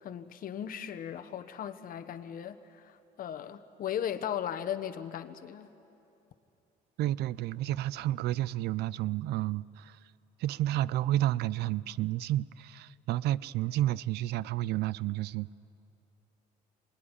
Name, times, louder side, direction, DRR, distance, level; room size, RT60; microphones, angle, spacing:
voice 1, 0.0-5.7, left 9 dB, 55° left, 1.3 m, -37 dB
voice 2, 7.0-9.9 10.4-15.5, right 14 dB, 75° right, 0.5 m, -31 dB
25.5 x 20.5 x 9.9 m
cardioid pair, 110°, 17 cm